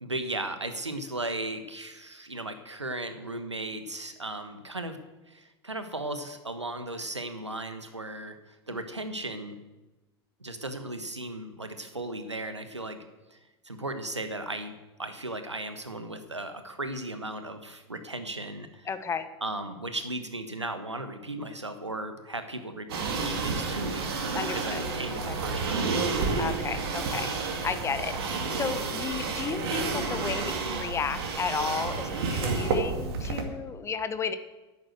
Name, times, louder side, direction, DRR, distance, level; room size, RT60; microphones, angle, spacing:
voice 1, 0.0-5.0 5.3-9.6 10.4-13.0 13.3-13.4 13.6-18.9 19.4-22.9 23.2-26.4, right 2 dB, 90° right, 8 dB, 1.2 m, -36 dB
voice 2, 18.8-19.3 24.3-24.8 25.3-25.4 26.4-27.3 27.6-28.1 28.5-34.4, left 6 dB, 20° left, 11 dB, 1.0 m, -33 dB
sound 1, 22.9-33.4, right 4 dB, 60° right, 2.3 m, -30 dB
11.0 x 8.5 x 7.8 m, 1.1 s
figure-of-eight pair, 90°, 14 cm